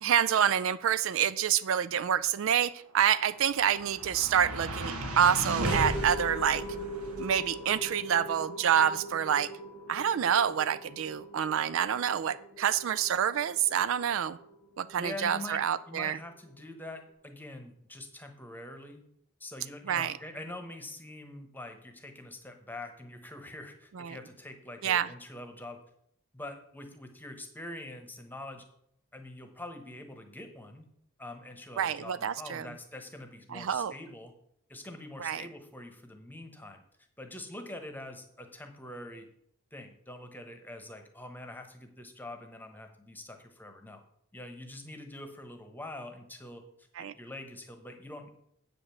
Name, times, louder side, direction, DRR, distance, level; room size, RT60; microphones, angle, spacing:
voice 1, 0.0-6.6 7.2-9.5 9.9-14.4 14.8-16.2 19.9-20.1 24.0-24.2 24.8-25.1 31.8-32.7 33.5-33.9 35.2-35.4 47.0-47.1, right 9 dB, 60° right, 15 dB, 0.3 m, -27 dB
sound 1, 3.1-15.4, right 1 dB, 90° right, 1.5 m, -38 dB
voice 2, 15.0-19.0 19.4-25.8 26.3-28.6 29.1-30.9 31.2-34.3 34.7-36.8 37.2-39.3 39.7-44.0 44.3-46.6 47.1-48.3, left 1 dB, 10° left, 6 dB, 1.1 m, -44 dB
8.4 x 5.1 x 7.1 m, 0.73 s
head